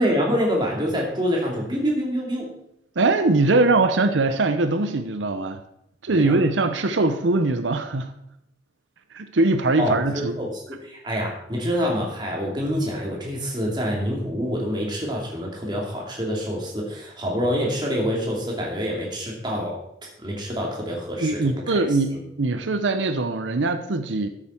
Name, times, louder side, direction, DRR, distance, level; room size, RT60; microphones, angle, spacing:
voice 1, 0.0-2.5 6.1-6.4 9.8-19.8 20.2-21.8 22.1-22.2, equal, 25° right, -1 dB, 2.7 m, -26 dB
voice 2, 3.0-5.6 6.0-8.1 9.1-10.3 21.2-24.3, right 2 dB, 90° right, 8 dB, 0.8 m, -21 dB
13.5 x 7.3 x 4.5 m, 0.77 s
head